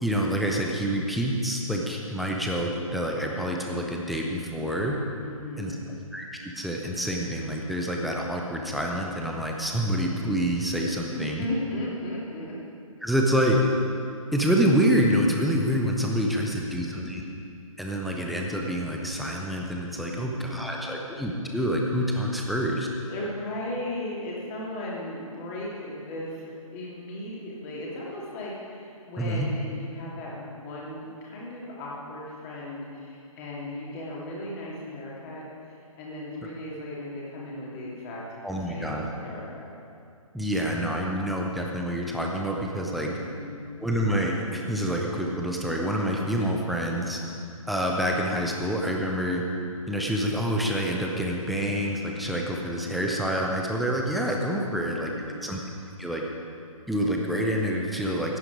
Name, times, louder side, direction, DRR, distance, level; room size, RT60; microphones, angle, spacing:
voice 1, 0.0-5.0 5.6-5.8 6.1-11.4 13.0-13.6 14.3-17.4 17.8-22.9 29.2-29.5 38.4-39.0 40.3-43.1 43.8-47.2 47.7-49.4 49.9-55.1 55.4-55.6 56.0-56.2 56.9-58.4, equal, ahead, -1 dB, 0.3 m, -27 dB
voice 2, 5.2-6.0 11.1-12.6 13.2-13.3 16.3-17.1 20.1-21.1 23.1-39.7 42.8-43.9 54.7-55.6, left 1 dB, 25° left, -5 dB, 2.7 m, -37 dB
14.5 x 9.8 x 4.9 m, 2.4 s
figure-of-eight pair, 135°, 18 cm